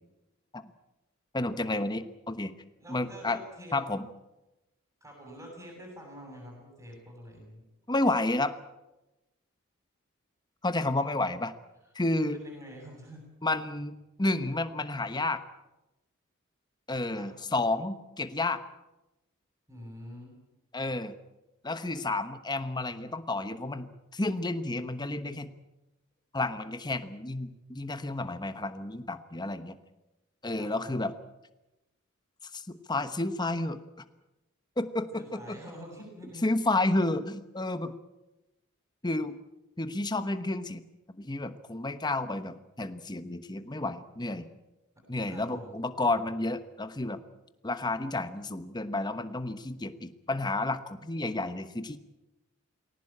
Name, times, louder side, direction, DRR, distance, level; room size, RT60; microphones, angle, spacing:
voice 1, 1.3-2.5 2.9-3.4 3.7-4.1 7.9-8.6 10.6-11.5 11.9-12.4 13.4-15.4 16.9-18.6 20.7-21.1 21.6-25.5 26.3-29.8 30.4-31.1 32.5-33.8 34.8-35.6 36.4-37.9 39.0-39.3 39.8-40.8 41.2-44.5 45.1-47.2 47.6-52.0, left 2 dB, 20° left, 10 dB, 1.1 m, -31 dB
voice 2, 2.8-3.8 5.0-7.6 12.2-13.2 17.1-17.3 19.7-20.3 30.6-31.0 35.1-36.5 45.3-45.8, equal, 15° right, -2 dB, 7.2 m, -46 dB
20.5 x 18.0 x 8.8 m, 1.0 s
head